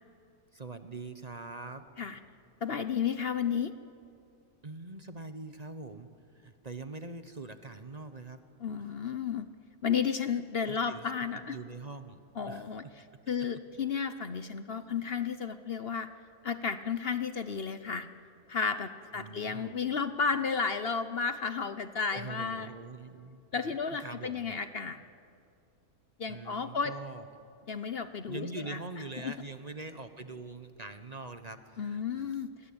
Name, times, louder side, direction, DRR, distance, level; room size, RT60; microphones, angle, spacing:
voice 1, 0.5-1.9 4.6-8.4 8.8-9.1 10.6-12.7 19.1-19.7 22.1-24.6 26.3-27.3 28.3-32.4, right 3 dB, 30° right, 9 dB, 1.2 m, -44 dB
voice 2, 2.6-3.7 8.6-9.5 9.8-11.6 12.4-12.8 13.3-16.1 16.4-18.1 18.5-22.7 23.5-25.0 26.2-26.9 27.7-28.8 29.2-29.3 31.8-32.5, left 6 dB, 50° left, 11 dB, 1.0 m, -32 dB
29.5 x 23.0 x 8.8 m, 2.5 s
omnidirectional pair, 1.4 m